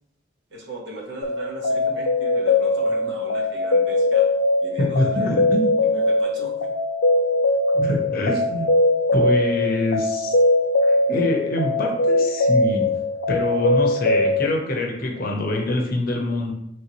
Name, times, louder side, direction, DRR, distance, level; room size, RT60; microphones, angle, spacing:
voice 1, 0.5-5.3 5.9-6.7, right 2 dB, 60° right, -1 dB, 0.9 m, -37 dB
sound 1, 1.2-14.5, left 2 dB, 60° left, 0.3 m, -21 dB
voice 2, 4.8-5.7 7.7-8.7 9.1-10.4 10.8-12.9 13.3-16.5, left 1 dB, 45° left, 0 dB, 0.8 m, -25 dB
4.3 x 3.2 x 3.0 m, 0.75 s
head